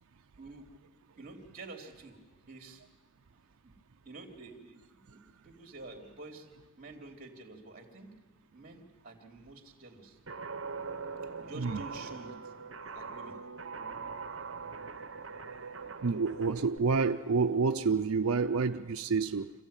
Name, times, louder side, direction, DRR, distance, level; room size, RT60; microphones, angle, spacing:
voice 1, 1.2-2.2 2.5-2.8 3.6-3.7 4.0-4.8 5.1-6.5 6.8-8.1 8.5-10.2 11.4-12.5 12.9-13.4, right 3 dB, 40° right, 3.3 m, -48 dB
Guitar, 10.3-16.8, right 5 dB, 65° right, 1.2 m, -42 dB
voice 2, 16.0-19.5, right 4 dB, 90° right, 0.6 m, -28 dB
26.5 x 15.0 x 9.1 m
head